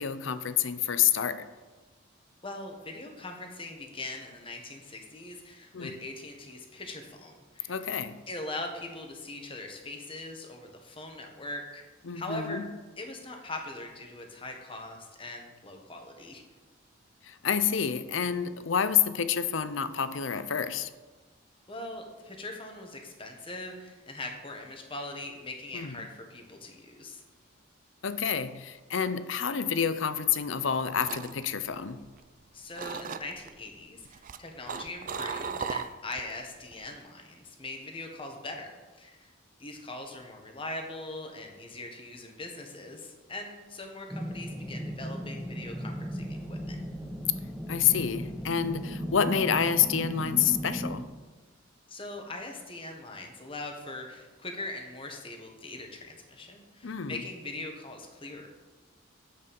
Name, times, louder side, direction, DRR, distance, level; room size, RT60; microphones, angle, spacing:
voice 1, 0.0-1.5 5.7-6.0 7.7-8.2 12.0-12.7 17.2-20.9 25.7-26.0 28.0-32.1 47.7-51.1 56.8-57.2, left 8 dB, 75° left, 0.6 m, -28 dB
voice 2, 2.4-7.7 8.3-11.8 12.1-12.6 13.0-16.4 21.7-27.2 32.5-38.7 39.0-39.3 39.6-46.8 51.9-58.5, left 2 dB, 25° left, 1.5 m, -41 dB
sound 1, 30.6-32.4 32.7-33.5 34.0-36.3 36.6-37.0, right 6 dB, 40° right, 0.4 m, -37 dB
sound 2, 44.1-51.0, equal, ahead, 0.7 m, -36 dB
9.7 x 8.1 x 5.3 m
head